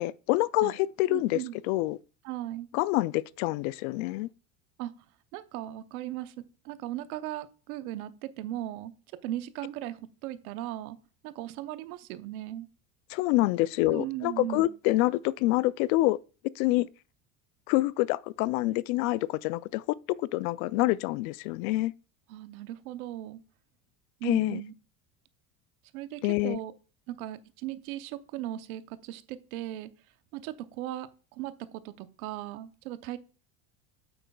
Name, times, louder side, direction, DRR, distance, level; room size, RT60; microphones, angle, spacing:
voice 1, 0.0-2.0 2.7-4.3 13.1-16.2 16.6-16.9 17.7-19.8 20.2-21.9 24.2-24.6 26.2-26.6, left 18 dB, 75° left, 0.5 m, -27 dB
voice 2, 1.1-1.5 2.2-2.7 4.8-4.9 5.3-6.3 6.6-8.9 9.2-11.0 11.2-12.7 13.9-14.7 22.3-23.4 24.2-24.7 25.9-26.7 27.1-29.9 30.3-33.2, right 14 dB, 85° right, 0.9 m, -37 dB
8.9 x 7.8 x 2.3 m
supercardioid pair, 100°, 42 cm